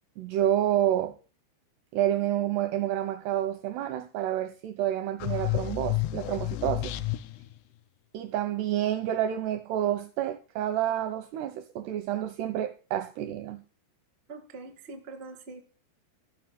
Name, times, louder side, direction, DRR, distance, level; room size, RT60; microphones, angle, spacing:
voice 1, 0.2-1.1 1.9-6.9 8.1-13.6, right 11 dB, 85° right, 2.4 m, -29 dB
sound 1, 5.2-7.5, left 15 dB, 80° left, 2.4 m, -30 dB
voice 2, 14.3-15.6, right 3 dB, 60° right, 0.6 m, -43 dB
14.5 x 6.0 x 7.6 m
omnidirectional pair, 5.5 m